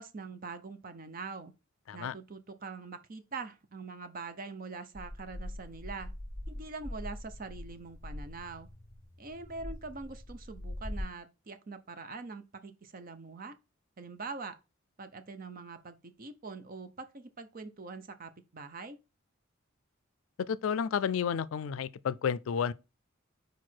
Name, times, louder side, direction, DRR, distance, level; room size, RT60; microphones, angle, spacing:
voice 1, 0.0-1.5 1.9-6.1 6.5-8.7 9.2-13.6 14.0-14.6 15.0-19.0, right 4 dB, 45° right, 0.7 m, -43 dB
sound 1, 4.9-11.0, left 1 dB, 15° left, 1.5 m, -43 dB
voice 2, 20.5-22.7, left 7 dB, 80° left, 0.4 m, -31 dB
4.6 x 4.6 x 4.4 m
head